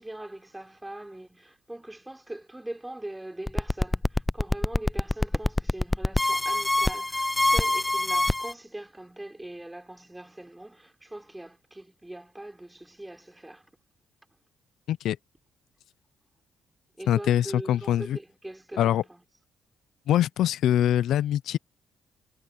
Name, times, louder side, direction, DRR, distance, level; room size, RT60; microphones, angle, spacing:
voice 1, 0.0-13.7 17.0-19.2, right 1 dB, 10° right, 5.4 m, -41 dB
sound 1, 3.5-8.5, left 2 dB, 15° left, 0.4 m, -24 dB
voice 2, 17.1-18.2 18.8-19.0 20.1-21.6, left 11 dB, 80° left, 0.5 m, -23 dB
cardioid pair, 90°, 0 cm